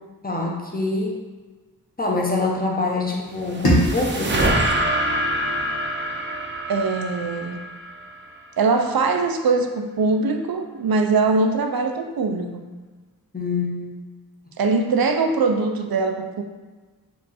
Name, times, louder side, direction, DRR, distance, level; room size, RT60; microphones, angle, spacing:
voice 1, 0.2-1.2 2.0-4.6 13.3-14.0, left 3 dB, 25° left, -1 dB, 0.8 m, -25 dB
sound 1, 3.1-8.5, right 1 dB, 30° right, 0.6 m, -25 dB
sound 2, 3.6-6.5, equal, 80° left, 1.3 m, -26 dB
voice 2, 6.7-7.6 8.6-12.6 14.6-16.4, right 3 dB, 70° right, 5 dB, 0.5 m, -22 dB
4.4 x 2.5 x 4.1 m, 1.3 s
wide cardioid pair, 55°, 37 cm